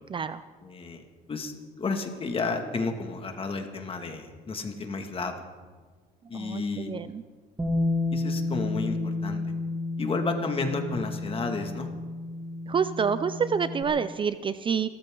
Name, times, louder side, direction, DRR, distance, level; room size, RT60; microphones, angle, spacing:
voice 1, 0.1-0.4 6.3-7.2 12.7-14.9, right 6 dB, 30° right, 14 dB, 0.5 m, -28 dB
voice 2, 0.6-1.0 1.3-1.5 1.8-5.4 6.3-6.9 8.1-9.4 10.0-11.9, left 3 dB, 35° left, 5 dB, 2.1 m, -32 dB
Bass guitar, 7.6-13.8, left 2 dB, 10° right, 2.5 m, -31 dB
27.0 x 14.0 x 3.9 m, 1.5 s
cardioid pair, 110°, 17 cm